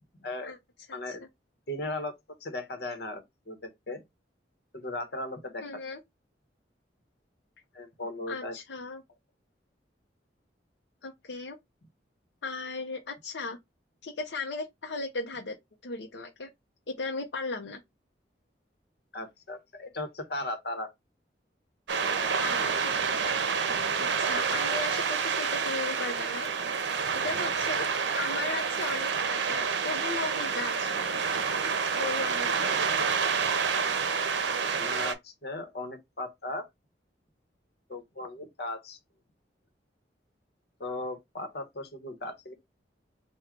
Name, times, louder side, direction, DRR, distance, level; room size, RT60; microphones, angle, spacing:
voice 1, 0.2-0.5 0.9-1.2 1.7-2.1 2.4-4.0 4.7-5.6 7.7-8.5 19.1-20.9 34.8-36.7 37.9-39.0 40.8-42.5, left 2 dB, 65° left, 1.0 m, -37 dB
voice 2, 5.6-6.0 8.3-9.0 11.0-11.6 12.4-13.6 14.0-15.6 15.8-16.5 16.9-17.8 22.4-23.7 24.0-26.5 27.2-27.9 28.1-31.2 32.0-32.7, left 3 dB, 80° left, 0.6 m, -37 dB
sound 1, 21.9-35.1, right 6 dB, 85° right, 0.6 m, -28 dB
3.6 x 2.2 x 4.5 m
head